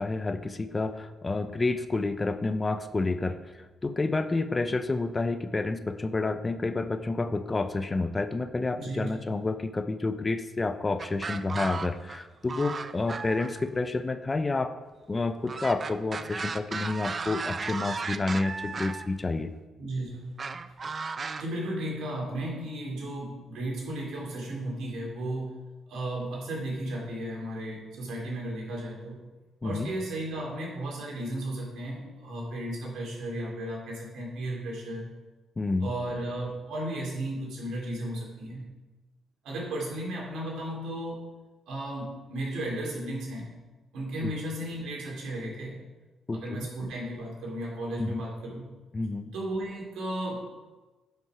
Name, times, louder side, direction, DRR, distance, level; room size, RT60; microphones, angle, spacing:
voice 1, 0.0-14.7 15.1-19.5 29.6-29.9 35.6-35.9 44.2-44.3 46.3-46.7 48.0-48.2 48.9-49.3, left 3 dB, 25° left, 11 dB, 0.5 m, -29 dB
voice 2, 8.8-9.2 19.8-20.4 21.4-25.6 25.9-29.2 29.6-35.1 35.8-38.6 39.4-41.3 41.7-43.5 43.9-45.8 46.3-48.6 49.3-50.5, right 1 dB, 80° right, -2 dB, 3.0 m, -34 dB
sound 1, 11.0-12.2 12.5-13.7 15.5-19.1 20.4-21.4, right 4 dB, 35° right, 0.5 m, -35 dB
10.5 x 5.7 x 4.9 m, 1.2 s
cardioid pair, 90°, 0 cm